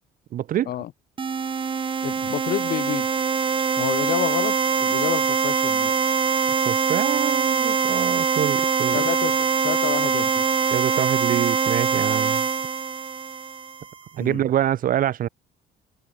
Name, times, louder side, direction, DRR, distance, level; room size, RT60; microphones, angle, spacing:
voice 1, 0.3-0.7 6.6-9.0 10.7-12.4 14.1-15.3, right 11 dB, 55° right, 1.2 m, -25 dB
sound 1, 1.2-13.9, right 6 dB, 30° right, 1.7 m, -23 dB
voice 2, 2.0-3.1 3.8-5.9 8.9-10.4 14.2-14.5, left 12 dB, 65° left, 7.4 m, -29 dB
cardioid pair, 110°, 17 cm